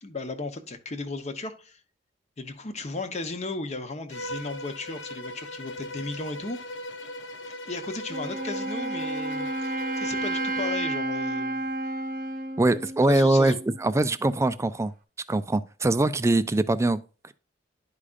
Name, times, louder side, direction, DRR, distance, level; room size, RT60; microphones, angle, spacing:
voice 1, 0.0-1.8 2.4-6.6 7.6-11.6 13.0-13.6, left 3 dB, 40° left, 0.9 m, -35 dB
Bowed string instrument, 4.1-10.8, left 1 dB, 90° left, 0.7 m, -38 dB
Wind instrument woodwind instrument, 8.1-13.8, right 2 dB, 50° right, 0.8 m, -31 dB
voice 2, 12.6-13.5 13.8-14.9 15.3-17.0, right 2 dB, 15° right, 0.4 m, -22 dB
11.0 x 4.9 x 2.5 m
head